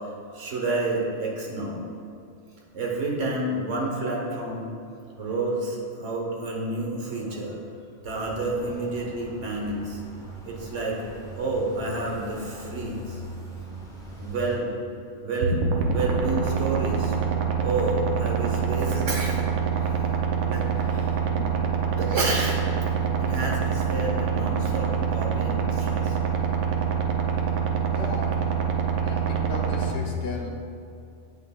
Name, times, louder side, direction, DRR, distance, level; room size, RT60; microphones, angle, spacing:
voice 1, 0.2-1.8 2.7-4.7 5.2-7.6 8.0-10.0 10.4-11.0 11.4-13.2 14.2-14.7 15.2-19.4 20.4-21.1 22.0-22.6 23.2-26.2, right 2 dB, 65° right, -1 dB, 1.4 m, -29 dB
sound 1, 8.0-14.6, right 1 dB, 5° left, 0.9 m, -41 dB
sound 2, 15.4-29.9, right 7 dB, 80° right, 1.2 m, -25 dB
voice 2, 21.3-21.7 27.9-28.6 29.1-30.5, left 3 dB, 55° left, 1 dB, 1.1 m, -36 dB
8.5 x 7.6 x 2.4 m, 2.5 s
omnidirectional pair, 1.4 m